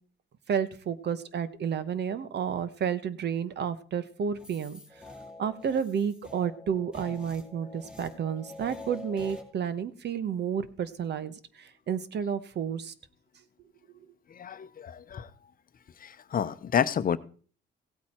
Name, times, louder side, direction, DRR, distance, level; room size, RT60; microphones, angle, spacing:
voice 1, 0.5-4.8 5.4-12.9, right 7 dB, 60° right, 15 dB, 1.1 m, -31 dB
sound 1, 4.4-9.4, left 2 dB, 5° right, 2.6 m, -46 dB
voice 2, 14.3-15.3 16.0-17.2, left 8 dB, 45° left, 13 dB, 0.8 m, -29 dB
16.5 x 8.4 x 4.4 m, 0.42 s
cardioid pair, 90°, 20 cm